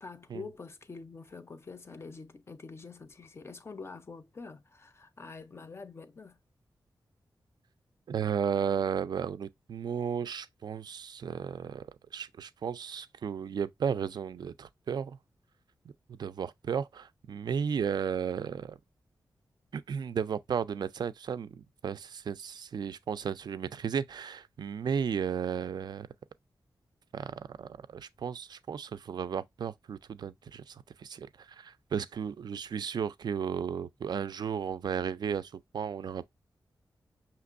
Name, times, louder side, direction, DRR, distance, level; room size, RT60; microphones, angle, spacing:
voice 1, 0.0-6.4, left 4 dB, 35° left, 0.5 m, -46 dB
voice 2, 8.1-11.9 12.1-15.2 16.1-18.8 19.7-26.1 27.1-36.2, right 7 dB, 65° right, 0.3 m, -34 dB
5.9 x 2.9 x 2.4 m
wide cardioid pair, 155°, 8 cm